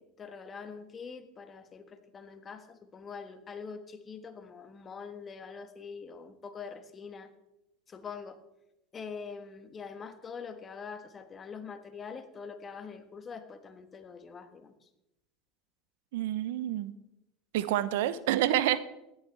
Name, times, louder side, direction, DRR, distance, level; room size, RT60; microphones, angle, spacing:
voice 1, 0.0-7.3 7.9-8.4 8.9-14.9, left 5 dB, 25° left, 8 dB, 1.4 m, -44 dB
voice 2, 16.1-16.9 17.5-18.8, right 13 dB, 75° right, 15 dB, 0.8 m, -28 dB
16.0 x 11.5 x 3.5 m, 0.88 s
supercardioid pair, 115°, 0 cm